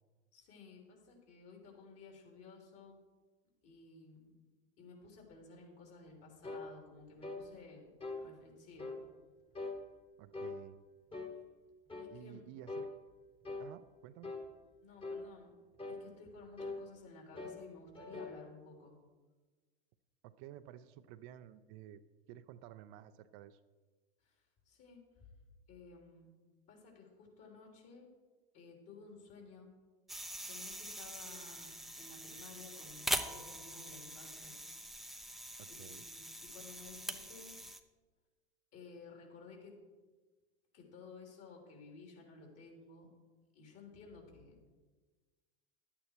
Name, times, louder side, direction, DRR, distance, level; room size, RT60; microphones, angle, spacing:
voice 1, 0.3-3.0 3.6-4.4 4.8-9.0 12.0-12.4 14.8-15.6 15.9-19.0 24.2-24.4 24.6-25.0 25.7-26.2 26.7-28.1 28.5-29.7 30.4-34.5 35.7-37.5 38.7-39.8 40.7-43.1 43.5-44.6, left 4 dB, 50° left, 1 dB, 3.2 m, -55 dB
sound 1, 6.4-6.7 7.2-7.5 8.0-8.2 8.8-9.0 9.5-9.8 10.3-10.6 11.1-11.4 11.9-12.1 12.7-12.9 13.4-13.7 14.2-14.5 15.0-15.3 15.8-16.0 16.6-16.8 17.4-17.6 17.9-18.4, left 3 dB, 15° left, 1.4 m, -42 dB
voice 2, 10.2-10.8 12.1-12.9 13.6-14.3 20.2-22.0 22.3-23.6 35.6-36.1, right 12 dB, 55° right, 12 dB, 0.6 m, -53 dB
sound 2, 30.1-37.8, right 1 dB, ahead, 0.6 m, -43 dB
11.0 x 8.7 x 4.5 m, 1.3 s
hypercardioid pair, 90°, 32 cm